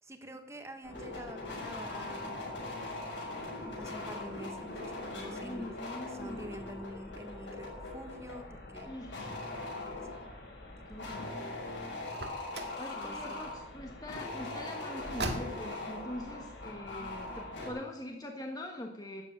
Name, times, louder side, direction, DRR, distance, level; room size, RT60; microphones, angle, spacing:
voice 1, 0.0-2.6 3.8-8.9 13.0-13.4, right 1 dB, 15° right, 6 dB, 1.4 m, -47 dB
sound 1, 0.8-17.7, left 2 dB, 80° left, 6.4 m, -41 dB
voice 2, 5.1-6.8 8.9-9.5 10.9-11.5 12.8-19.2, left 1 dB, 20° left, 2 dB, 1.3 m, -43 dB
Car, 12.1-12.9 15.0-15.9, right 2 dB, 65° right, 1.9 m, -38 dB
12.5 x 8.2 x 9.0 m, 0.79 s
head